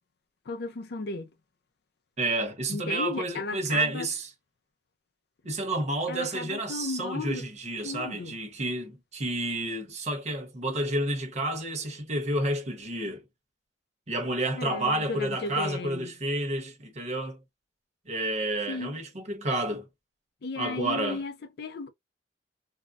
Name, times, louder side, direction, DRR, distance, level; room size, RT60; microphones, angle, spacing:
voice 1, 0.5-1.3 2.7-4.1 6.1-7.5 7.8-8.4 14.5-16.1 18.7-19.0 20.4-21.9, left 3 dB, 65° left, 0.5 m, -35 dB
voice 2, 2.2-4.3 5.4-13.2 14.1-17.4 18.1-19.9 20.6-21.2, right 1 dB, 40° right, 0.8 m, -30 dB
3.7 x 2.0 x 2.3 m
head